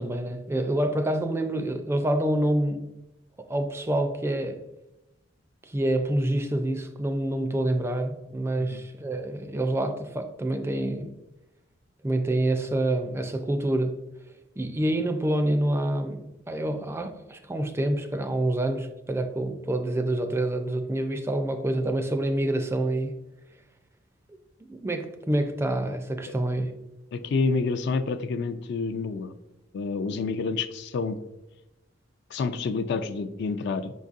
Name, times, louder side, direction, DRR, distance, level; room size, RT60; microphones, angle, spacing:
voice 1, 0.0-2.8 3.5-4.6 5.6-11.1 12.0-14.0 14.6-23.1 24.7-26.7, right 1 dB, 15° right, 7 dB, 0.3 m, -27 dB
voice 2, 27.1-29.3 29.7-31.2 32.3-33.9, left 4 dB, 60° left, 10 dB, 0.3 m, -28 dB
5.2 x 3.9 x 2.4 m, 0.95 s
head